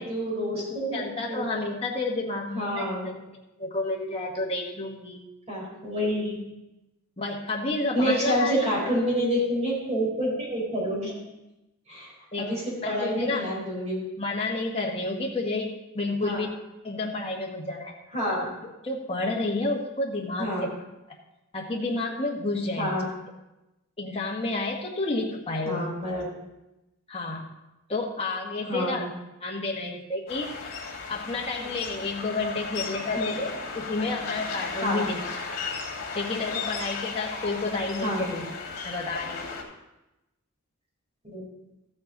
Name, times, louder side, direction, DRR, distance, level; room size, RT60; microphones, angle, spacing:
voice 1, 0.0-1.0 1.3-1.4 2.5-3.1 5.5-6.4 7.9-11.1 11.9-12.1 12.4-14.0 16.2-16.4 18.1-18.4 20.4-20.7 22.8-23.0 25.6-26.3 28.7-29.1 31.6-31.7 33.1-33.3 34.8-35.0 36.1-36.2 38.0-38.3 41.3-41.4, equal, 30° right, -5 dB, 4.4 m, -28 dB
voice 2, 0.6-5.2 7.2-8.7 12.3-12.6 12.8-13.5 14.2-16.5 16.8-17.9 18.8-20.7 21.5-22.9 24.0-25.9 27.1-27.5 27.9-29.0 29.4-30.5 31.1-35.2 36.1-38.5 38.8-39.5, left 2 dB, 25° left, -2 dB, 1.5 m, -30 dB
sound 1, 30.3-39.6, left 4 dB, 40° left, 2.8 m, -35 dB
14.0 x 7.9 x 4.0 m, 0.97 s
head